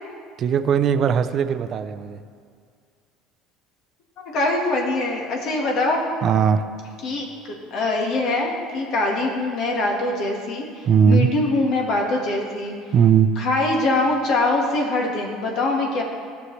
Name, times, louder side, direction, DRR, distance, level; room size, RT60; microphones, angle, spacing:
voice 1, 0.4-2.2 6.2-6.6 10.9-11.3 12.9-13.3, right 7 dB, 40° right, 11 dB, 0.4 m, -18 dB
voice 2, 4.2-6.0 7.0-7.3 7.7-12.7 13.3-16.0, left 2 dB, 55° left, 0 dB, 1.5 m, -23 dB
14.5 x 6.4 x 3.2 m, 2.2 s
cardioid pair, 135°, 0 cm